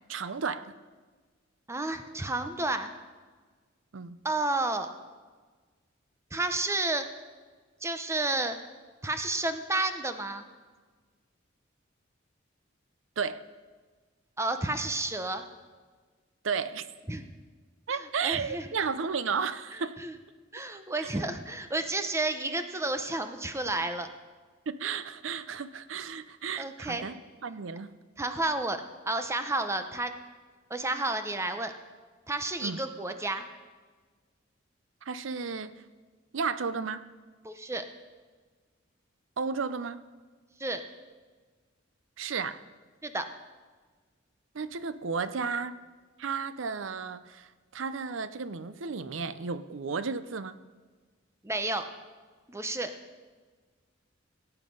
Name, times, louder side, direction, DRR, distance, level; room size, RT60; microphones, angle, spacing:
voice 1, 0.1-0.8 3.9-4.2 13.2-13.4 16.4-16.9 17.9-20.0 24.7-27.9 32.6-32.8 35.0-35.7 36.3-37.0 39.4-40.0 42.2-42.6 44.5-45.8 46.2-50.5, right 5 dB, 70° right, 14 dB, 0.6 m, -33 dB
voice 2, 1.7-2.9 4.2-4.9 6.3-7.1 7.8-8.6 9.0-10.5 14.4-15.4 17.1-17.2 17.9-18.7 20.0-20.1 20.5-24.1 26.6-27.1 28.2-30.1 30.7-31.7 32.3-33.5 37.4-37.8 40.6-40.8 43.0-43.3 51.4-51.9 52.5-52.9, right 2 dB, 15° right, 8 dB, 0.8 m, -31 dB
17.0 x 8.2 x 5.4 m, 1.4 s
head